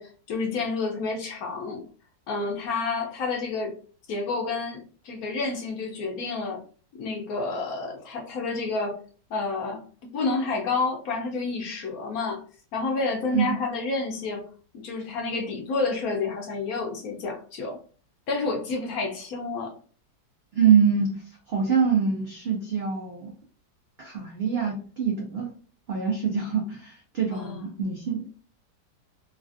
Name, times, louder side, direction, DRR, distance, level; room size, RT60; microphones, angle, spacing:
voice 1, 0.0-1.8 2.3-3.8 4.1-6.6 6.9-9.0 9.3-9.8 10.1-12.4 12.7-14.5 14.7-17.8 18.3-19.7 27.3-27.7, left 3 dB, 65° left, 1 dB, 1.0 m, -29 dB
voice 2, 20.5-21.2 21.5-23.3 24.0-25.5 25.9-28.3, right 6 dB, 75° right, 0 dB, 0.5 m, -24 dB
3.2 x 2.4 x 2.5 m, 0.41 s
omnidirectional pair, 1.8 m